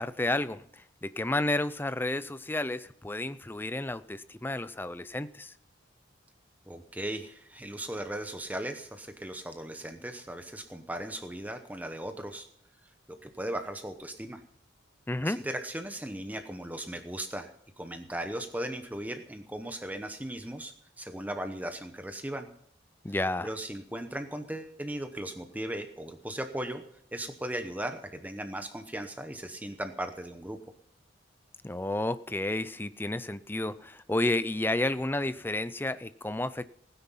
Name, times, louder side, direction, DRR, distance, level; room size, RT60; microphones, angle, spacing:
voice 1, 0.0-5.5 15.1-15.4 23.0-23.5 31.6-36.7, left 2 dB, 10° left, 14 dB, 0.4 m, -31 dB
voice 2, 6.7-12.5 13.2-14.4 15.2-17.5 17.8-22.5 23.4-26.8 27.1-30.6, right 1 dB, 10° right, 7 dB, 0.9 m, -37 dB
16.5 x 9.9 x 5.6 m, 0.69 s
head